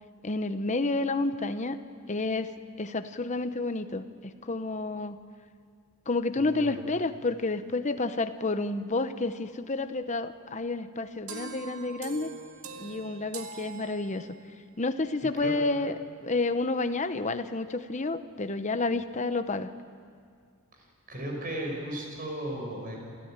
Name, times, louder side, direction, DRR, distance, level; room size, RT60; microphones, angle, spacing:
voice 1, 0.2-1.8 2.1-2.5 2.8-4.0 4.5-5.2 6.1-12.3 12.8-14.3 14.8-16.0 16.2-19.7, left 3 dB, 35° left, 10 dB, 0.8 m, -30 dB
voice 2, 6.4-6.8 15.4-15.6 20.8-23.0, right 1 dB, 40° right, 0 dB, 5.8 m, -36 dB
sound 1, 11.3-14.6, right 5 dB, 75° right, 1.8 m, -43 dB
28.5 x 14.0 x 8.9 m, 2.2 s
head